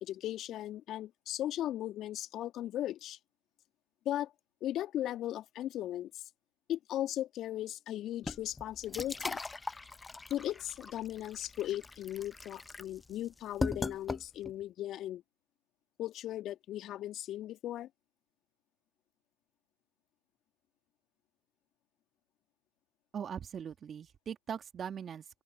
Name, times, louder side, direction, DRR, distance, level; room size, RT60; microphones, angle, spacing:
voice 1, 0.0-3.2 4.1-4.3 4.6-6.2 6.7-9.4 10.3-15.2 16.0-17.9, left 12 dB, 35° left, 2.1 m, -37 dB
sound 1, 8.2-14.6, left 3 dB, 10° left, 0.6 m, -40 dB
voice 2, 23.1-25.4, right 8 dB, 25° right, 1.7 m, -41 dB
open air
hypercardioid pair, 105°, 0 cm